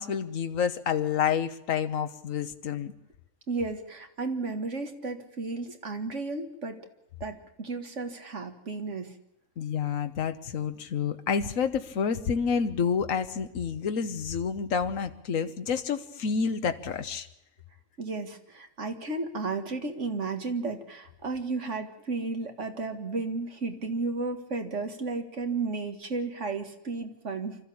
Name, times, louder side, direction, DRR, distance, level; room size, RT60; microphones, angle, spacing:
voice 1, 0.0-2.9 9.6-17.3, left 6 dB, 80° left, 9 dB, 1.4 m, -29 dB
voice 2, 3.5-6.8 7.2-9.1 18.0-27.6, right 3 dB, 65° right, 6 dB, 2.2 m, -33 dB
25.5 x 13.5 x 8.6 m, 0.89 s
omnidirectional pair, 1.3 m